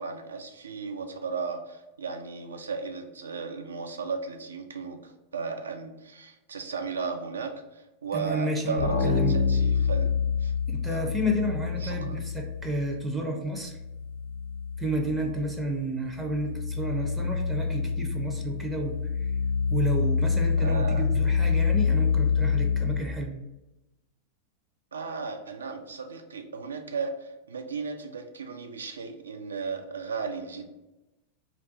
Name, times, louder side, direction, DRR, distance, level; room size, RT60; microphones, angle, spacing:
voice 1, 0.0-10.1 10.4-10.5 10.9-11.0 11.8-12.2 20.6-21.0 24.9-30.7, right 5 dB, 70° right, 5 dB, 0.3 m, -35 dB
voice 2, 8.1-9.3 10.7-13.8 14.8-19.3 19.7-23.4, equal, 10° right, 1 dB, 0.4 m, -31 dB
sound 1, 8.8-13.1 13.4-23.0, left 5 dB, 80° left, 0.4 m, -27 dB
2.3 x 2.2 x 3.7 m, 0.99 s
figure-of-eight pair, 90°, 0 cm